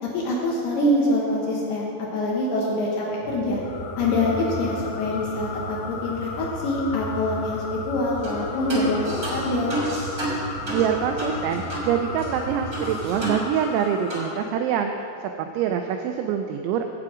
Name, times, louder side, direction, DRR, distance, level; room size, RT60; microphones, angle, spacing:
voice 1, 0.0-3.6 4.0-9.7, left 1 dB, 70° left, -4 dB, 2.6 m, -25 dB
sound 1, 3.2-13.3, equal, 65° right, 1.5 m, -37 dB
sound 2, 3.6-14.5, left 5 dB, 85° left, 2.4 m, -37 dB
sound 3, 8.2-8.4 8.7-11.9 12.2-12.3 12.7-13.8 14.1-14.3, right 1 dB, 35° right, 1.2 m, -31 dB
voice 2, 10.7-16.9, right 8 dB, 85° right, 5 dB, 2.6 m, -25 dB
11.0 x 7.7 x 4.9 m, 2.6 s
omnidirectional pair, 5.8 m